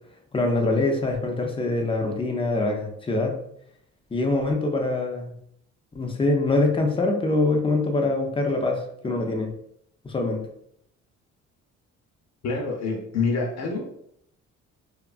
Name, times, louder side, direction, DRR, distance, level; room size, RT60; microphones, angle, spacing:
voice 1, 0.3-3.4 4.1-5.3 5.9-9.5 10.0-10.4, left 2 dB, 20° left, 2 dB, 0.5 m, -24 dB
voice 2, 12.4-13.8, left 4 dB, 60° left, 1 dB, 0.8 m, -26 dB
2.8 x 2.4 x 2.4 m, 0.71 s
cardioid pair, 90°, 30 cm